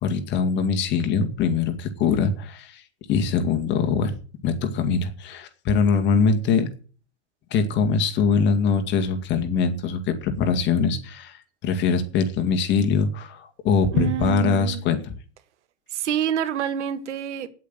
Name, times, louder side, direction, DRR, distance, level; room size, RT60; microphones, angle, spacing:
voice 1, 0.0-2.8 3.1-4.1 4.4-6.7 7.5-15.0, left 5 dB, 30° left, 2.2 m, -22 dB
voice 2, 13.9-14.8 15.9-17.5, right 10 dB, 85° right, 1.8 m, -27 dB
9.8 x 8.4 x 9.0 m
supercardioid pair, 155°, 34 cm